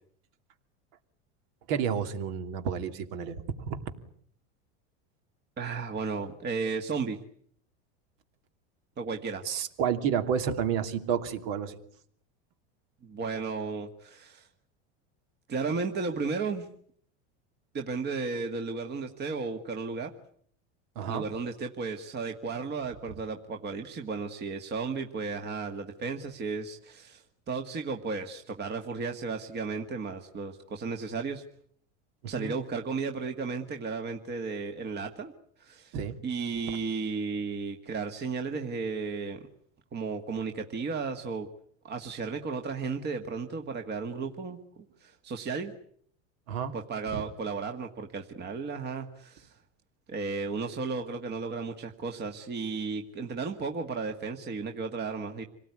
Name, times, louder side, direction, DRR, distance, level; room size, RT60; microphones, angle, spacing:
voice 1, 1.7-3.8 9.4-11.8 20.9-21.2 32.4-32.5 35.9-36.2 46.5-46.8 47.1-47.2, right 7 dB, 60° right, 8 dB, 2.9 m, -30 dB
voice 2, 5.6-7.2 9.0-9.5 13.0-14.5 15.5-16.7 17.7-20.1 21.1-31.4 32.3-35.3 35.6-36.0 36.2-39.5 39.9-41.5 41.8-45.7 46.7-49.6 50.1-55.4, right 4 dB, 30° right, 5 dB, 1.8 m, -34 dB
27.5 x 18.5 x 9.7 m, 0.64 s
supercardioid pair, 120°, 33 cm